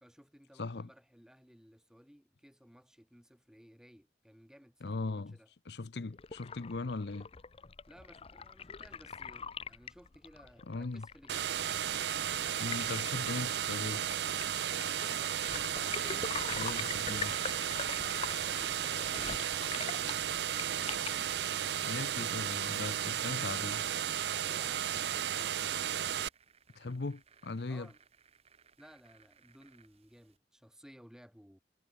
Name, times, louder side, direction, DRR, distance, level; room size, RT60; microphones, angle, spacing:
voice 1, 0.0-5.5 7.9-11.9 24.4-25.6 27.7-28.0 28.8-31.6, equal, 5° right, 1.7 m, -58 dB
voice 2, 0.6-0.9 4.8-5.4 5.7-7.3 10.7-11.1 12.6-14.0 16.5-17.3 21.8-23.8 26.8-27.9, left 3 dB, 70° left, 0.7 m, -39 dB
sound 1, 6.1-21.4, left 6 dB, 30° left, 0.5 m, -44 dB
sound 2, 11.3-26.3, right 10 dB, 70° right, 0.5 m, -34 dB
sound 3, 17.8-30.4, right 6 dB, 35° right, 2.2 m, -65 dB
head